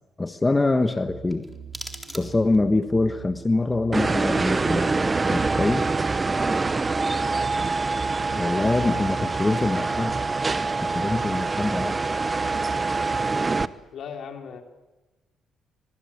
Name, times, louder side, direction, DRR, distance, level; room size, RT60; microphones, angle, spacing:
voice 1, 0.2-1.5 2.1-5.0 5.3-5.9 8.3-10.2 10.8-12.0, left 2 dB, 20° left, 8 dB, 1.3 m, -24 dB
sound 1, 1.0-13.7, right 8 dB, 70° right, 3.4 m, -43 dB
sound 2, 1.3-2.7, equal, 5° right, 3.8 m, -41 dB
sound 3, 3.9-13.7, right 3 dB, 25° right, 0.9 m, -25 dB
voice 2, 13.9-14.6, left 7 dB, 65° left, 4 dB, 3.7 m, -39 dB
25.5 x 23.5 x 8.6 m, 1.2 s
cardioid pair, 90°, 0 cm